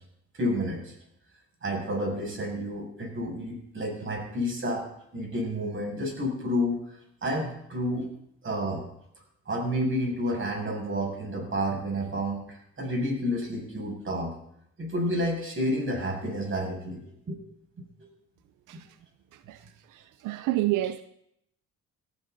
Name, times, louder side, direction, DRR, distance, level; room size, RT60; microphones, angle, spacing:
voice 1, 0.3-0.9 1.6-4.9 5.1-6.8 7.2-8.1 8.4-8.9 9.5-14.4 14.8-17.4 18.0-18.1 18.7-18.8, equal, 40° right, 7.0 m, -30 dB
voice 2, 19.9-21.0, right 16 dB, 90° right, 0.6 m, -29 dB
18.5 x 13.0 x 4.1 m
cardioid pair, 90°, 30 cm